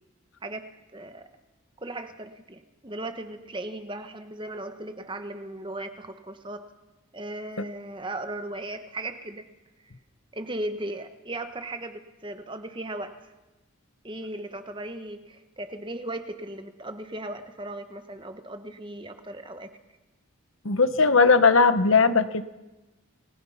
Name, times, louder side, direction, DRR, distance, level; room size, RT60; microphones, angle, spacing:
voice 1, 0.9-1.3 1.8-6.6 7.1-9.5 10.3-13.1 14.0-19.7, right 1 dB, 25° right, 8 dB, 1.3 m, -37 dB
voice 2, 20.6-22.4, left 4 dB, 70° left, 12 dB, 1.2 m, -19 dB
29.0 x 20.0 x 5.8 m, 1.0 s
head